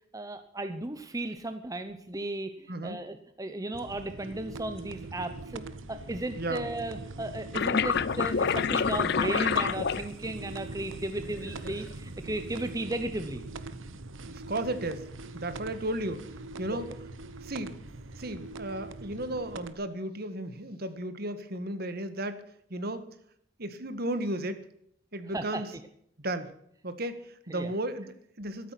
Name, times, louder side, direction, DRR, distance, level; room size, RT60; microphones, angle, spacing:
voice 1, 0.1-5.6 5.9-13.4 25.3-25.6 27.5-27.7, right 2 dB, 20° right, 9 dB, 0.9 m, -35 dB
voice 2, 2.7-3.0 6.4-6.7 14.3-16.3 16.6-16.9 17.4-17.8 18.2-23.1 23.6-24.6 25.1-25.7 26.2-26.5 26.8-28.7, right 1 dB, 50° right, 11 dB, 1.7 m, -34 dB
sound 1, 3.7-19.7, right 2 dB, 85° right, 1.1 m, -42 dB
sound 2, 7.5-10.5 11.3-11.8, left 6 dB, 55° left, 0.5 m, -27 dB
13.5 x 13.5 x 6.0 m, 0.68 s
head